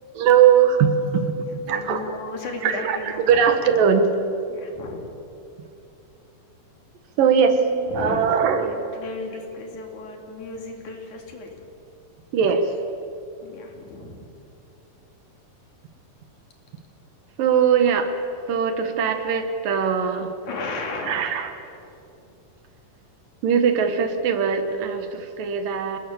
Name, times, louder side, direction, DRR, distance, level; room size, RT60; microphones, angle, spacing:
voice 1, 0.1-2.1 2.6-4.1 7.2-7.6 7.9-8.7 12.3-12.7 17.4-18.1 18.5-20.3 21.1-21.5 23.4-26.0, right 7 dB, 75° right, 7 dB, 3.1 m, -20 dB
voice 2, 1.5-3.4 4.5-5.1 7.5-8.2 8.6-11.6 13.4-14.3 20.4-21.3, left 3 dB, 60° left, 2 dB, 3.8 m, -35 dB
27.5 x 19.5 x 7.1 m, 2.7 s
omnidirectional pair, 4.0 m